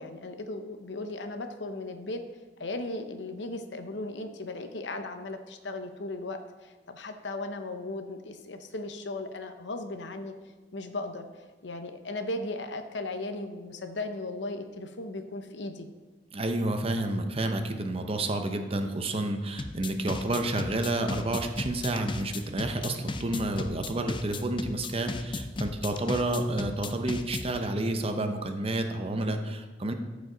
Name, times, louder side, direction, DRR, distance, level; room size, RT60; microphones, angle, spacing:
voice 1, 0.0-2.2 2.6-10.4 10.7-11.3 11.6-15.9 17.0-17.1 23.6-23.7, left 2 dB, 80° left, 7 dB, 0.8 m, -37 dB
voice 2, 16.3-29.9, right 2 dB, 35° right, 6 dB, 0.7 m, -30 dB
sound 1, 19.6-27.6, left 2 dB, 30° left, 0.5 m, -35 dB
13.5 x 5.1 x 3.9 m, 1.3 s
head